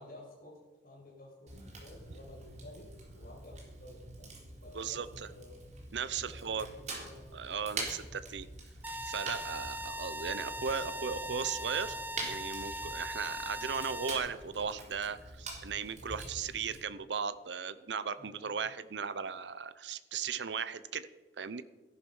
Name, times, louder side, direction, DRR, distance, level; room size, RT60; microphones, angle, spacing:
voice 1, 0.0-5.6 6.2-7.3 18.2-18.6, left 1 dB, 50° left, -2 dB, 5.4 m, -53 dB
Fire, 1.5-16.8, right 2 dB, 40° right, 3.6 m, -46 dB
voice 2, 4.7-5.3 5.9-6.7 7.3-8.5 9.0-21.1 21.4-21.6, right 6 dB, 80° right, 14 dB, 0.7 m, -37 dB
sound 1, 8.8-14.2, equal, 10° right, 0.7 m, -40 dB
14.0 x 11.0 x 5.5 m, 1.2 s
head